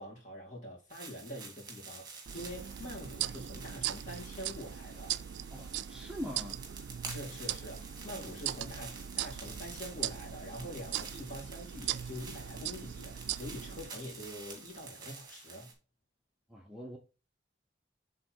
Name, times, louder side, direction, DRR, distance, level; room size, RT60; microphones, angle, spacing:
voice 1, 0.0-5.2 7.1-15.7, equal, 40° left, 2.4 m, -45 dB
sound 1, 0.9-15.7, right 4 dB, 25° right, 1.7 m, -49 dB
sound 2, 2.3-13.9, right 11 dB, 75° right, 0.3 m, -40 dB
voice 2, 5.5-6.6 16.5-17.0, equal, 5° right, 0.7 m, -42 dB
6.7 x 3.8 x 4.4 m
head